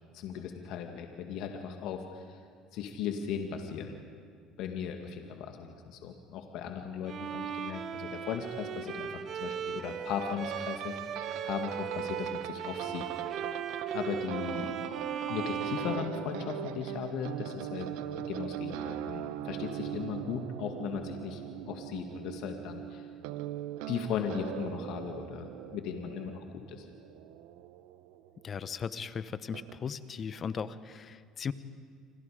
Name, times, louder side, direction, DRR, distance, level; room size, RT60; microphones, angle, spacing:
voice 1, 0.1-2.2 2.7-4.0 4.6-11.1 11.4-13.4 13.9-14.7 15.3-17.9 18.1-21.4 21.7-23.0 23.9-26.8, left 7 dB, 70° left, 4 dB, 2.1 m, -37 dB
Bowed string instrument, 7.1-16.9, right 7 dB, 50° right, 1.3 m, -38 dB
sound 1, 10.2-28.6 29.5-29.8, right 12 dB, 80° right, 0.8 m, -40 dB
voice 2, 28.4-31.5, left 6 dB, 40° left, 14 dB, 1.1 m, -37 dB
29.5 x 25.5 x 5.2 m, 2.1 s
supercardioid pair, 90°, 0 cm